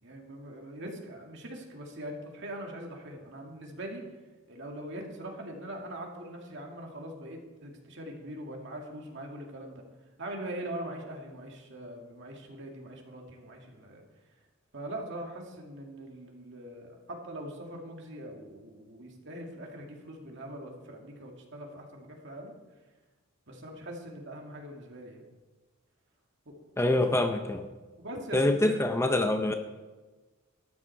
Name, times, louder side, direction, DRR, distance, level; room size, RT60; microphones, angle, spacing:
voice 1, 0.0-4.0 4.5-9.8 10.2-14.0 14.7-22.5 23.5-25.2 26.5-26.6 28.0-29.0, right 1 dB, 55° right, 1 dB, 2.2 m, -42 dB
voice 2, 26.8-27.7 28.3-29.5, left 1 dB, 10° left, 6 dB, 0.5 m, -25 dB
13.0 x 10.0 x 4.7 m, 1.2 s
head